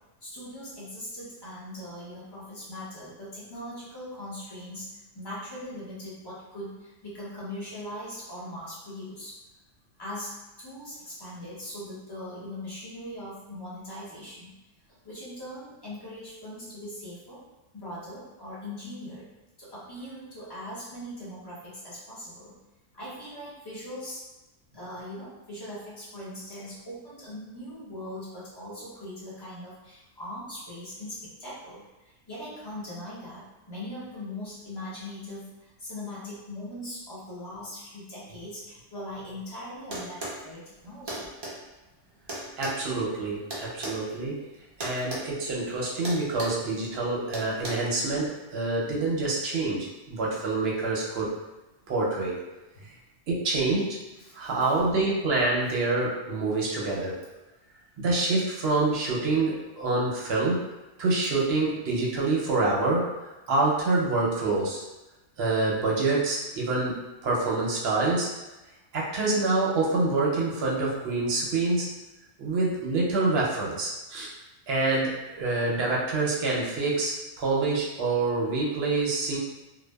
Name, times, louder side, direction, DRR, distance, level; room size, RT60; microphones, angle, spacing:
voice 1, 0.2-9.4 10.0-14.5 15.0-17.4 17.7-19.3 19.6-22.5 22.9-24.2 24.7-41.3 47.5-47.6 52.7-52.9 54.2-54.5, left 1 dB, 25° left, -9 dB, 0.7 m, -40 dB
sound 1, 39.9-40.4 41.1-41.6 42.3-44.0 44.8-45.3 45.5-45.7 46.0-46.6 47.3-47.7, right 1 dB, 40° right, 0.3 m, -35 dB
voice 2, 42.6-44.4 44.8-51.3 51.9-52.3 53.3-54.0 54.3-57.2 58.0-60.6 61.0-63.1 63.5-64.8 65.4-68.3 68.9-71.9 72.4-74.3 74.7-79.4, right 3 dB, 60° right, -4 dB, 0.8 m, -26 dB
2.7 x 2.1 x 2.2 m, 1.0 s
omnidirectional pair, 1.4 m